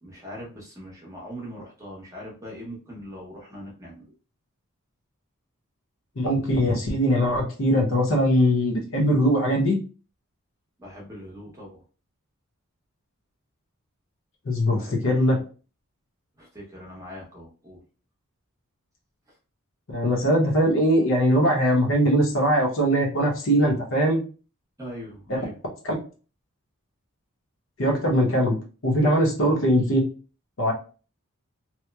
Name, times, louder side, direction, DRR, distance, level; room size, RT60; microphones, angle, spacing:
voice 1, 0.0-4.1 10.8-11.8 14.7-15.5 16.4-17.8 24.8-25.5 29.4-29.6, equal, 15° right, -3 dB, 0.7 m, -41 dB
voice 2, 6.2-9.8 14.4-15.4 19.9-24.2 25.3-25.4 25.8-25.9 27.8-28.6 28.8-30.0 30.6-30.7, equal, 60° left, 0 dB, 0.7 m, -21 dB
2.9 x 2.0 x 2.2 m, 0.36 s
head